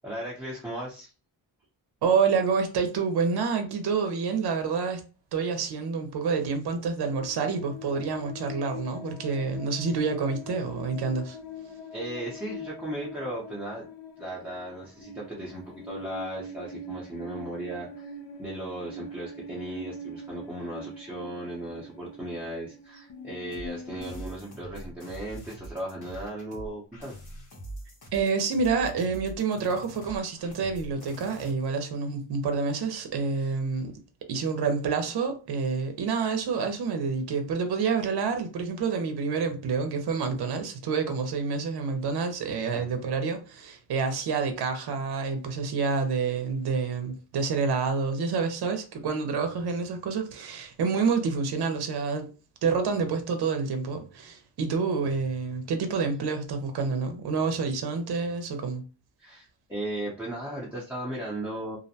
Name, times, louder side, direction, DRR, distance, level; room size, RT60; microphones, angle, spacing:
voice 1, 0.0-1.1 11.9-13.8 14.2-27.2 33.4-33.5 42.7-42.9 59.2-61.8, right 1 dB, 5° right, 0.5 m, -36 dB
voice 2, 2.0-5.0 5.3-11.4 28.1-33.9 34.3-52.3 52.6-58.8, right 5 dB, 60° right, 0.6 m, -28 dB
sound 1, 7.1-24.2, left 2 dB, 90° left, 0.6 m, -43 dB
sound 2, 23.5-31.5, right 1 dB, 60° left, 1.1 m, -43 dB
2.5 x 2.1 x 2.7 m
wide cardioid pair, 170°, 43 cm